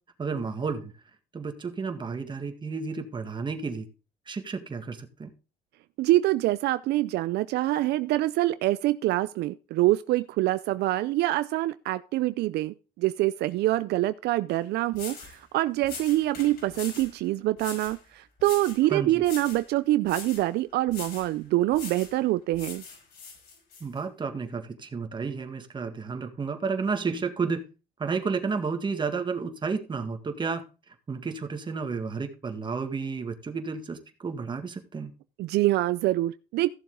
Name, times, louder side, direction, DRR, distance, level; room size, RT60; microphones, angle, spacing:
voice 1, 0.2-0.9 1.3-3.9 4.3-5.3 18.9-19.1 23.8-27.6 28.0-30.6 31.1-35.1, right 5 dB, 25° right, 6 dB, 1.9 m, -31 dB
voice 2, 6.0-22.8 35.4-36.7, right 16 dB, 75° right, 14 dB, 0.5 m, -25 dB
sound 1, 14.5-14.6 14.9-15.4 15.8-17.1 17.6-18.0 18.4-18.8 19.2-19.7 20.0-20.5 20.9-21.3 21.7-22.2 22.5-23.8, left 5 dB, 70° left, 5.5 m, -41 dB
15.0 x 7.1 x 3.7 m, 0.32 s
cardioid pair, 110°, 17 cm